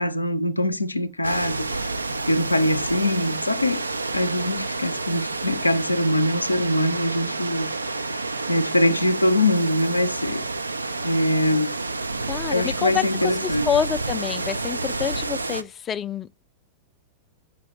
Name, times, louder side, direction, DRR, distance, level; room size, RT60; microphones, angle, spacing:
voice 1, 0.0-3.8 4.1-10.4 11.0-11.8 12.5-13.7, left 1 dB, 90° left, 0.5 m, -23 dB
sound 1, 1.2-15.6, right 3 dB, 85° right, 0.4 m, -29 dB
voice 2, 12.2-16.3, left 8 dB, 25° left, 0.4 m, -27 dB
5.6 x 5.3 x 3.9 m
figure-of-eight pair, 95°, 0 cm